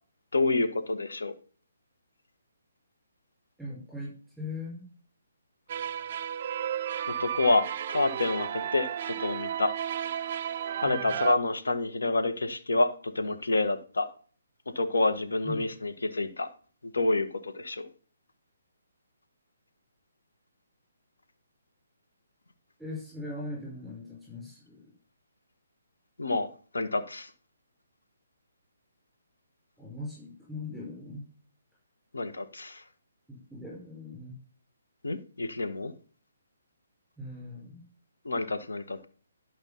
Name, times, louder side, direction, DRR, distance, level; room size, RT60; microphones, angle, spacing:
voice 1, 0.3-1.3 7.2-9.7 10.8-14.1 14.7-16.5 16.9-17.9 26.2-26.5 26.7-27.3 32.1-32.8 35.0-35.9 38.2-39.1, left 2 dB, 80° left, 8 dB, 1.6 m, -28 dB
voice 2, 3.6-4.8 10.8-11.2 15.4-15.7 22.8-24.9 29.8-31.3 33.3-34.4 37.2-37.8, left 2 dB, ahead, -6 dB, 5.1 m, -40 dB
sound 1, 5.7-11.3, right 9 dB, 45° right, 0.5 m, -33 dB
12.0 x 5.5 x 5.8 m, 0.42 s
figure-of-eight pair, 140°, 0 cm